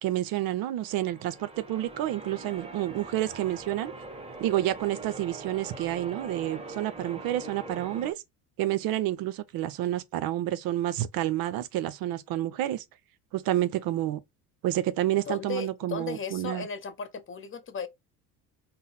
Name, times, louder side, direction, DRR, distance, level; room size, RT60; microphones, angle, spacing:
voice 1, 0.0-3.9 4.4-8.2 8.6-12.8 13.3-14.2 14.6-16.7, right 13 dB, 55° right, 0.5 m, -29 dB
Church bell, 0.8-8.1, right 3 dB, 15° right, 1.0 m, -42 dB
voice 2, 15.3-17.9, left 5 dB, 30° left, 0.6 m, -36 dB
3.9 x 2.0 x 3.8 m
hypercardioid pair, 70°, 44 cm